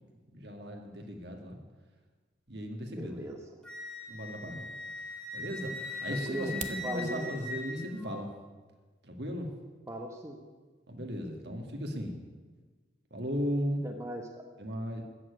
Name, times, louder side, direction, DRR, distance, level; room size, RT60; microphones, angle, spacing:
voice 1, 0.3-1.6 2.5-3.2 4.1-4.7 5.3-5.8 6.0-8.3 9.0-9.5 10.9-12.2 13.1-13.8 14.6-15.0, equal, 65° right, 3 dB, 2.0 m, -36 dB
voice 2, 2.9-3.4 6.1-7.3 9.9-10.4 13.8-14.4, right 1 dB, 15° right, 3 dB, 1.1 m, -39 dB
Wind instrument woodwind instrument, 3.6-8.2, left 2 dB, 5° left, 2.4 m, -40 dB
sound 1, 6.3-6.9, right 8 dB, 40° right, 0.8 m, -41 dB
14.0 x 7.5 x 9.6 m, 1.4 s
head